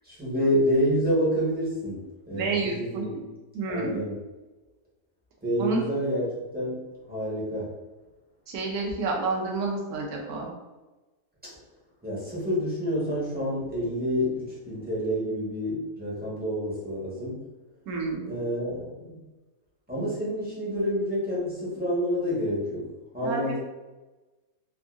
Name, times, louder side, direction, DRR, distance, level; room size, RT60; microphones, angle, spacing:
voice 1, 0.0-3.2 3.7-4.2 5.4-6.3 6.5-6.8 7.1-7.7 12.0-17.4 18.3-19.2 19.9-23.6, equal, 5° right, -9 dB, 0.9 m, -28 dB
voice 2, 2.3-3.0 3.5-4.0 5.6-5.9 8.5-10.5 17.9-18.2 23.2-23.6, right 3 dB, 70° right, -1 dB, 1.2 m, -29 dB
3.6 x 2.5 x 2.4 m, 1.2 s
omnidirectional pair, 1.7 m